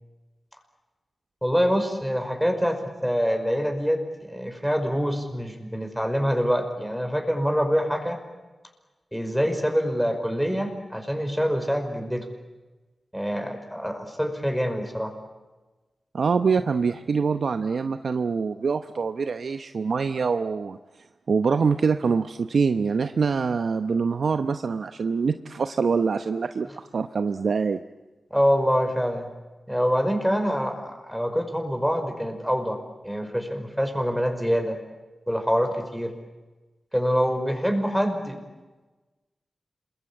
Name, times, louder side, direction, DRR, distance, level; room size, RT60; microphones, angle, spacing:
voice 1, 1.4-8.2 9.1-12.3 13.1-15.1 28.3-29.3 29.7-32.8 33.0-34.8 35.3-36.1 36.9-38.4, equal, ahead, 5 dB, 5.4 m, -25 dB
voice 2, 16.1-20.8 21.3-26.7 26.9-27.8, right 5 dB, 75° right, 9 dB, 0.8 m, -24 dB
27.5 x 22.5 x 8.7 m, 1.2 s
cardioid pair, 50°, 0 cm